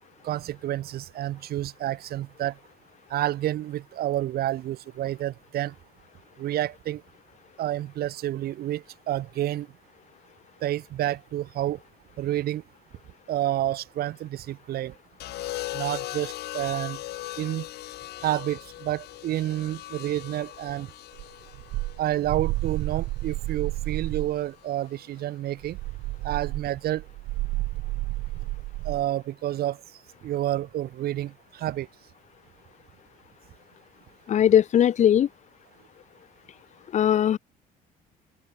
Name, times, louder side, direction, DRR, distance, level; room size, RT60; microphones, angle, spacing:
voice 1, 0.2-2.5 3.1-5.7 6.4-7.0 7.6-9.7 10.6-11.8 12.2-12.6 13.3-14.9 15.7-17.0 17.4-17.7 18.2-20.9 22.0-25.8 26.2-27.0 28.9-29.8 30.2-31.9, right 13 dB, 65° right, 1.8 m, -29 dB
sound 1, 15.2-23.4 24.6-25.0, left 15 dB, 75° left, 2.4 m, -39 dB
sound 2, 21.2-24.4 25.6-29.1, right 20 dB, 90° right, 3.4 m, -31 dB
voice 2, 34.3-35.3 36.9-37.4, left 10 dB, 45° left, 0.7 m, -19 dB
open air
cardioid pair, 110°, 17 cm